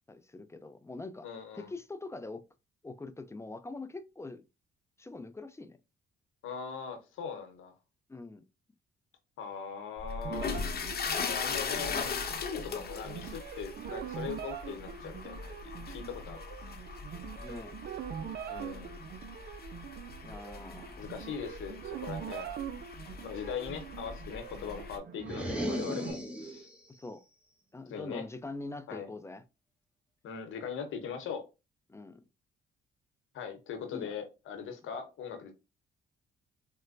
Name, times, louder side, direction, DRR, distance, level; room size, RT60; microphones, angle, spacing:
voice 1, 0.1-1.3 1.5-2.5 2.8-4.4 5.0-5.8 8.1-8.4 17.4-17.8 20.2-21.0 23.1-23.2 27.0-27.2 27.7-29.4 31.9-32.3 33.9-34.1, left 3 dB, 15° left, 0.4 m, -43 dB
voice 2, 1.2-1.7 6.4-7.7 9.4-10.5 11.3-16.4 18.5-19.0 21.0-22.5 23.2-26.7 27.9-28.3 28.9-29.1 30.2-31.4 33.3-35.5, left 6 dB, 75° left, 1.0 m, -40 dB
sound 1, 10.0-25.0, left 5 dB, 50° left, 0.8 m, -40 dB
sound 2, 10.2-26.1, right 9 dB, 55° right, 0.4 m, -44 dB
sound 3, 25.2-26.8, equal, 5° right, 1.0 m, -35 dB
4.1 x 2.1 x 2.5 m
supercardioid pair, 65°, 21 cm